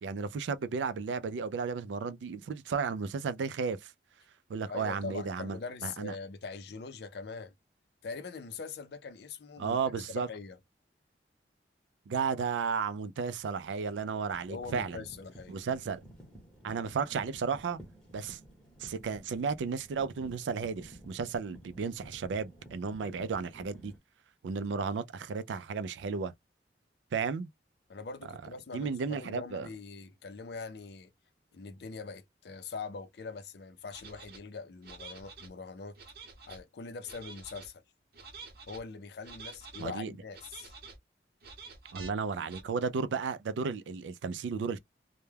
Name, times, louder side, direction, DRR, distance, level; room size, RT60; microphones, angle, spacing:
voice 1, 0.0-3.9 4.5-6.1 9.6-10.3 12.1-15.0 15.5-16.0 16.6-17.8 18.1-18.4 18.8-23.9 24.4-26.3 27.1-27.5 28.7-29.7 39.8-40.1 41.9-44.8, right 5 dB, 85° right, 0.3 m, -33 dB
voice 2, 4.7-7.5 8.0-10.6 14.5-15.6 27.9-31.1 31.5-36.0 36.5-37.8 38.7-40.7, left 4 dB, 65° left, 0.5 m, -42 dB
sound 1, 13.4-13.5 14.0-24.0, right 1 dB, 5° left, 0.8 m, -53 dB
sound 2, 33.9-34.4 34.8-35.5 36.0-36.6 37.0-37.7 38.1-38.8 39.2-39.9 40.3-41.0 41.4-42.1 42.5-42.6, right 4 dB, 55° right, 0.8 m, -48 dB
2.2 x 2.1 x 3.2 m
head